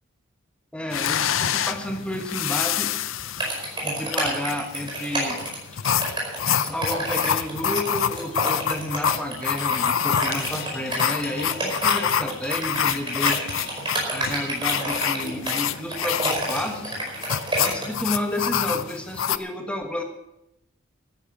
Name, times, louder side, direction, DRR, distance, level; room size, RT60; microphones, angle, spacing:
voice 1, 0.7-2.9 3.8-5.4 5.7-5.9 6.6-13.4 14.1-17.0 17.6-20.0, left 1 dB, 5° left, 3 dB, 1.3 m, -31 dB
sound 1, 0.9-19.4, left 8 dB, 80° left, 0.6 m, -27 dB
sound 2, 3.4-18.0, right 2 dB, 25° right, 4.9 m, -29 dB
sound 3, 9.2-17.2, left 4 dB, 45° left, 2.2 m, -42 dB
13.5 x 10.5 x 7.2 m, 0.85 s
head